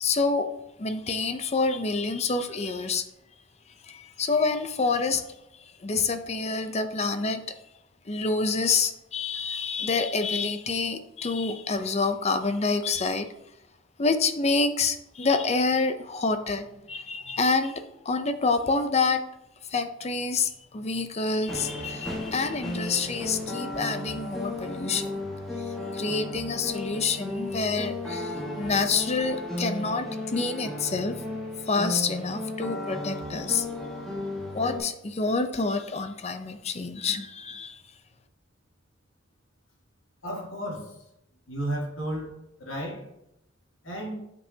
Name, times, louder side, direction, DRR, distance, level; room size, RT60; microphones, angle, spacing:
voice 1, 0.0-0.5 0.8-3.0 3.9-5.4 5.8-7.4 8.1-13.3 14.0-19.2 19.7-25.1 25.6-25.7 25.9-31.2 31.7-33.7 34.5-37.8, left 4 dB, 35° left, 8 dB, 0.6 m, -27 dB
sound 1, 21.5-34.8, left 1 dB, ahead, 1.5 m, -34 dB
voice 2, 40.2-40.9 41.5-42.3 42.6-43.0 43.8-44.1, right 1 dB, 80° left, -2 dB, 2.1 m, -33 dB
8.6 x 5.4 x 2.8 m, 0.83 s
head